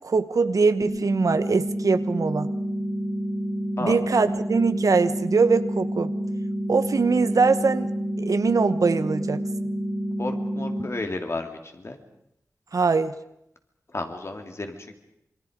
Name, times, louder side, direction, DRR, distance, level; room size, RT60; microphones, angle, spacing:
voice 1, 0.0-2.5 3.8-6.1 6.7-7.9 8.2-9.4 12.7-13.1, right 4 dB, 70° right, 11 dB, 1.1 m, -22 dB
sound 1, 0.8-10.8, equal, 15° left, 4.6 m, -29 dB
voice 2, 10.2-12.0 13.9-14.9, left 2 dB, 45° left, 5 dB, 3.0 m, -32 dB
27.0 x 23.5 x 5.2 m, 0.79 s
wide cardioid pair, 70°, 6 cm